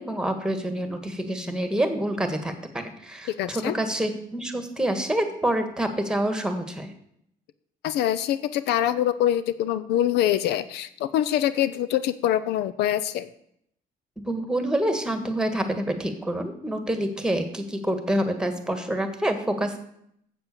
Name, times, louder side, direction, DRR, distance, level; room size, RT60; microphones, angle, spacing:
voice 1, 0.0-6.9 14.2-19.8, right 1 dB, 5° right, 7 dB, 1.6 m, -27 dB
voice 2, 3.4-3.7 7.8-13.3, left 11 dB, 80° left, 14 dB, 0.6 m, -24 dB
7.9 x 7.6 x 6.9 m, 0.71 s
cardioid pair, 110°, 17 cm